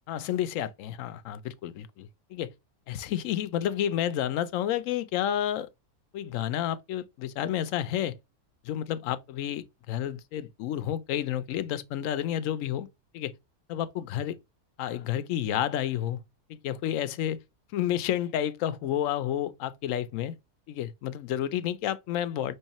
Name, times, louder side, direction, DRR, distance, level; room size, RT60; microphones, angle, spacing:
voice 1, 0.1-2.5 2.9-5.7 6.1-8.2 8.6-12.9 13.1-13.3 13.7-14.4 14.8-16.2 16.5-17.4 17.7-20.4 20.7-22.5, left 11 dB, 70° left, 0.9 m, -30 dB
5.5 x 3.1 x 2.9 m
omnidirectional pair, 1.6 m